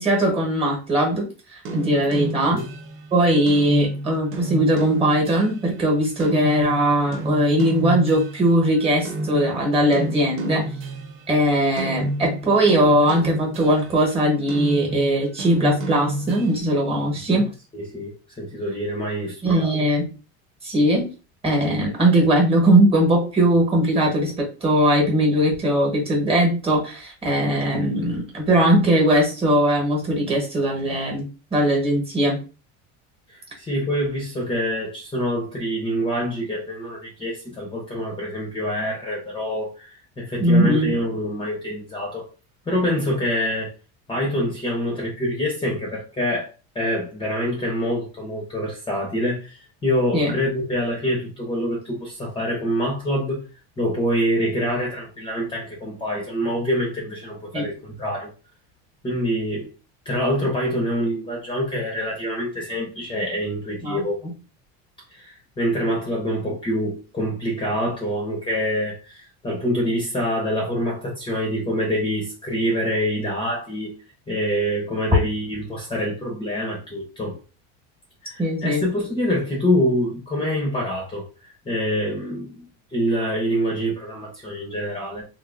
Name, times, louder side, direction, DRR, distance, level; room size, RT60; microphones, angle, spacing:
voice 1, 0.0-2.6 3.1-10.6 11.3-17.5 19.4-20.1 20.6-21.1 21.4-32.4 40.4-40.9 50.1-50.3 57.5-57.7 63.8-64.3 78.4-78.8, right 1 dB, 15° right, 1.3 m, -20 dB
sound 1, 1.7-8.8 9.1-11.4 11.8-14.1 14.5-16.6, right 1 dB, 40° right, 0.7 m, -30 dB
voice 2, 2.1-2.7 17.3-17.4 17.7-19.7 33.3-42.3 42.7-43.7 44.1-53.4 53.8-58.3 59.0-59.7 60.0-64.2 65.1-73.9 74.3-77.4 78.2-81.3 81.6-82.6 82.9-85.2, equal, 15° left, 0.8 m, -26 dB
3.6 x 2.6 x 2.5 m
cardioid pair, 145°, 33 cm